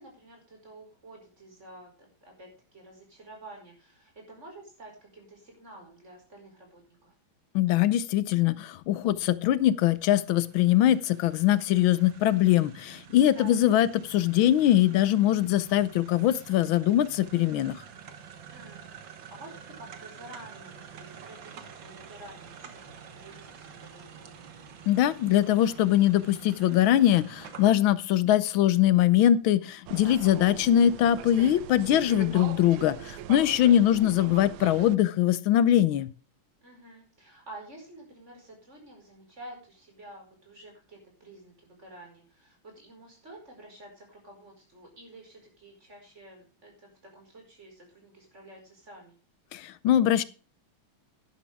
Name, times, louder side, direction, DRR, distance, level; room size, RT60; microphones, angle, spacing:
voice 1, 0.0-7.1 13.3-13.6 18.5-24.4 33.6-34.0 36.6-49.1, right 2 dB, 30° right, 1 dB, 5.3 m, -50 dB
voice 2, 7.5-17.8 24.9-36.1 49.5-50.2, left 12 dB, 75° left, 17 dB, 1.4 m, -22 dB
sound 1, 9.7-27.7, right 7 dB, 65° right, 1.9 m, -48 dB
sound 2, 29.9-35.0, right 12 dB, 85° right, 1.6 m, -41 dB
11.5 x 11.0 x 3.5 m, 0.35 s
omnidirectional pair, 2.3 m